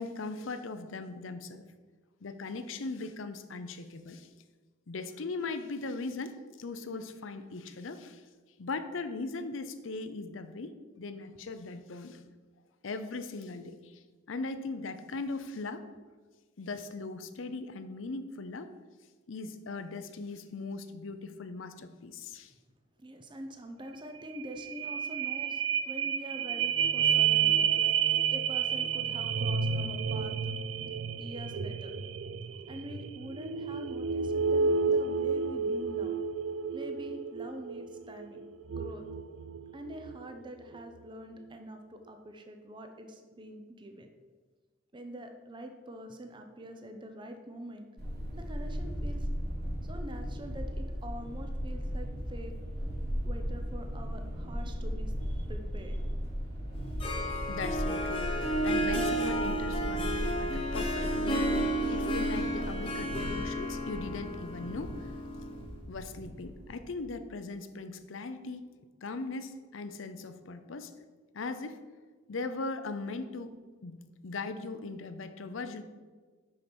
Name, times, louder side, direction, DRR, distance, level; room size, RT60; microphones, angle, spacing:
voice 1, 0.0-1.6 2.2-4.3 4.9-8.2 8.6-12.2 12.8-14.0 14.3-15.8 16.6-18.7 19.3-22.5 57.5-65.1 65.9-68.7 69.0-70.9 71.3-71.8 72.3-73.6 73.8-75.8, left 3 dB, 80° left, 10 dB, 0.6 m, -39 dB
voice 2, 23.0-27.9 28.3-30.5 31.2-31.9 32.4-36.1 36.7-38.4 38.8-39.0 39.7-44.1 44.9-47.9 48.3-49.3 49.8-52.6 53.2-56.1, equal, 25° right, 5 dB, 0.7 m, -45 dB
sound 1, 23.9-24.0 24.3-40.2 40.7-40.8, right 6 dB, 75° right, 0.4 m, -30 dB
sound 2, 48.0-67.0, equal, 55° right, 1.7 m, -37 dB
Harp, 56.7-65.7, right 1 dB, 30° left, 1.2 m, -32 dB
6.3 x 5.7 x 6.1 m, 1.4 s
head